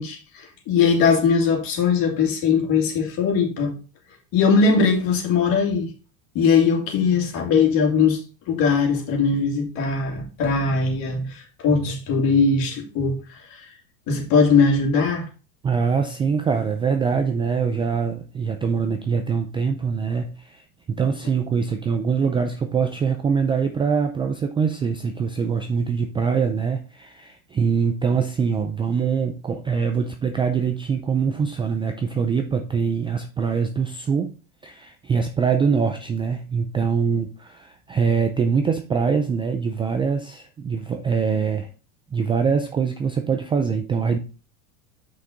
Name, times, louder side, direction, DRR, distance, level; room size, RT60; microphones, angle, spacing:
voice 1, 0.0-3.7 4.3-5.9 6.3-8.2 8.5-13.7 14.1-15.3, left 5 dB, 50° left, 2.7 m, -20 dB
voice 2, 15.6-34.3 34.6-41.7 42.1-44.2, right 6 dB, 15° right, 0.3 m, -23 dB
6.0 x 5.9 x 3.9 m
supercardioid pair, 120°, 45 cm